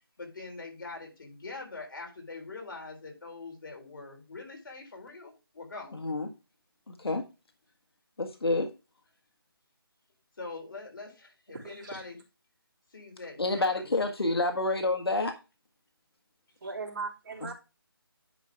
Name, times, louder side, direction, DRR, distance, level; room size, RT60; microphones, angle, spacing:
voice 1, 0.2-6.0 10.4-12.2 12.9-14.0, left 3 dB, 55° left, 2 dB, 4.0 m, -43 dB
voice 2, 5.9-6.3 6.9-7.2 8.2-8.7 13.4-15.3, left 2 dB, 80° left, 5 dB, 1.7 m, -28 dB
voice 3, 11.5-12.1 16.6-17.5, right 4 dB, 50° right, -4 dB, 3.4 m, -39 dB
10.0 x 5.5 x 3.5 m, 0.29 s
figure-of-eight pair, 165°, 13 cm